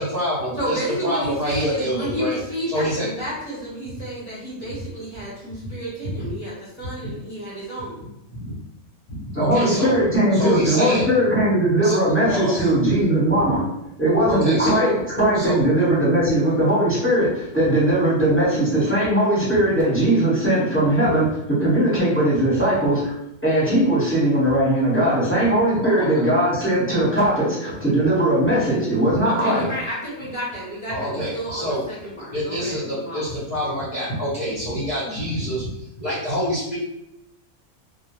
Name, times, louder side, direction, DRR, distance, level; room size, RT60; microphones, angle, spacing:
voice 1, 0.0-2.4 2.7-3.1 6.1-6.2 7.0-7.1 8.3-8.5 9.1-10.0 10.3-11.1 11.8-12.0 12.3-12.7 14.3-14.8 15.3-15.6 25.8-26.2 30.9-31.8 32.1-36.8, equal, 40° left, -9 dB, 0.6 m, -26 dB
voice 2, 0.6-8.0 29.2-33.3, equal, 25° right, -9 dB, 0.8 m, -31 dB
voice 3, 9.3-13.6 14.0-23.1 23.4-29.7, right 1 dB, 10° left, -10 dB, 0.8 m, -19 dB
2.2 x 2.2 x 2.9 m, 0.86 s
omnidirectional pair, 1.5 m